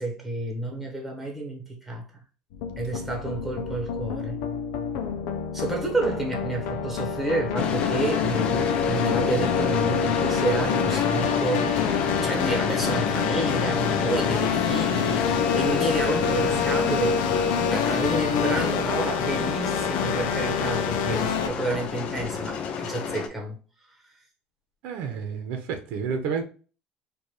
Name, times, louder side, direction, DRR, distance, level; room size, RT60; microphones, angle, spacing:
voice 1, 0.0-2.0 2.8-4.4 5.5-17.2 17.7-23.6, right 2 dB, 5° right, 1.2 m, -30 dB
sound 1, 2.5-21.5, left 6 dB, 85° left, 0.6 m, -27 dB
sound 2, 7.6-23.3, left 6 dB, 45° left, 0.7 m, -28 dB
voice 2, 24.8-26.4, right 6 dB, 65° right, 0.9 m, -30 dB
4.5 x 2.5 x 3.2 m
cardioid pair, 155°, 3 cm